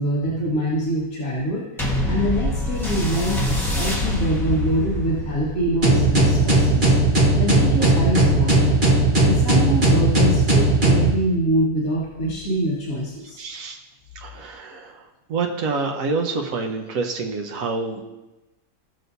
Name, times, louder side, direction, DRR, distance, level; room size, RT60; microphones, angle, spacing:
voice 1, 0.0-1.6 2.1-6.9 7.4-8.8 9.2-13.4, right 1 dB, 65° left, -8 dB, 2.2 m, -24 dB
sound 1, 1.8-10.6 11.3-11.4, left 1 dB, ahead, 1.3 m, -27 dB
sound 2, 5.8-11.1, right 2 dB, 35° right, 1.5 m, -17 dB
voice 2, 13.4-13.8 14.1-15.0 15.3-18.0, right 4 dB, 70° right, 2 dB, 1.4 m, -27 dB
16.5 x 6.2 x 2.7 m, 1.0 s
omnidirectional pair, 1.5 m